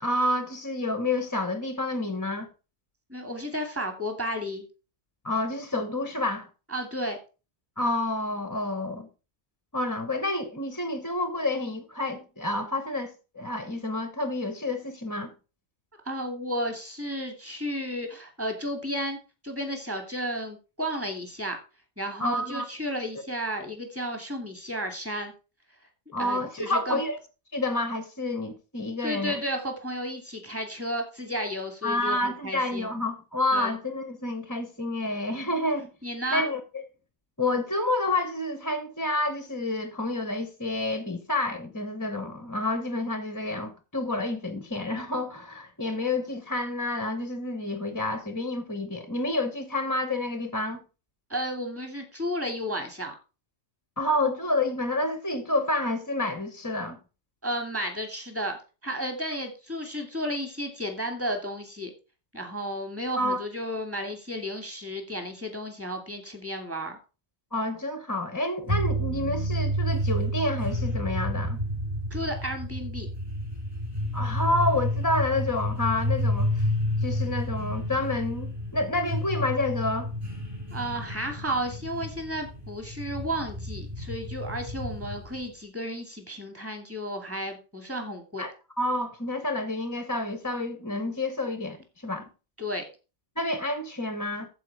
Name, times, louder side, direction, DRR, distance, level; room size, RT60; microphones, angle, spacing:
voice 1, 0.0-2.5 5.2-6.5 7.8-9.1 9.7-15.3 22.2-22.7 26.1-27.2 27.5-29.4 31.8-35.9 36.3-36.8 37.4-50.8 54.0-57.0 63.2-63.4 67.5-71.6 74.1-76.7 77.0-80.1 88.4-92.3 93.4-94.5, left 2 dB, 15° left, 0.9 m, -29 dB
voice 2, 3.1-4.7 6.7-7.2 16.0-19.2 19.4-21.6 22.0-25.3 26.2-27.0 29.0-32.9 33.5-33.7 36.0-36.5 51.3-53.1 57.4-61.9 62.3-67.0 72.1-73.1 80.7-88.5 92.6-92.8, equal, 10° right, 2.5 m, -33 dB
sound 1, 68.7-85.5, equal, 30° right, 6.2 m, -30 dB
14.5 x 4.9 x 4.7 m
omnidirectional pair, 1.3 m